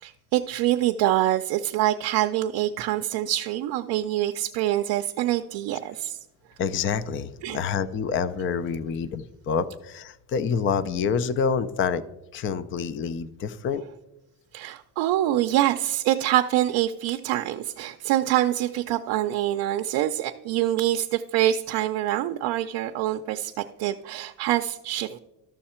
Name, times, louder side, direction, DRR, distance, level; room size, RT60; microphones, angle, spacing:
voice 1, 0.0-6.2 7.4-7.6 14.5-25.2, right 13 dB, 70° right, 6 dB, 0.5 m, -25 dB
voice 2, 6.6-12.0 12.3-13.8, left 6 dB, 35° left, 15 dB, 0.4 m, -27 dB
13.0 x 6.4 x 4.3 m, 0.95 s
cardioid pair, 130°, 39 cm